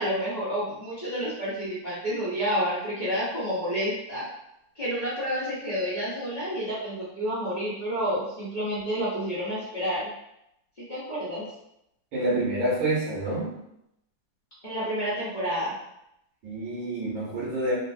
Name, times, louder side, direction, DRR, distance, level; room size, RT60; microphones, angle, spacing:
voice 1, 0.0-4.2 4.7-10.1 10.8-11.4 14.6-15.7, equal, 35° left, -11 dB, 0.8 m, -29 dB
voice 2, 12.1-13.5 16.4-17.7, right 1 dB, 85° right, -5 dB, 1.9 m, -27 dB
4.1 x 2.1 x 2.6 m, 0.80 s
omnidirectional pair, 2.1 m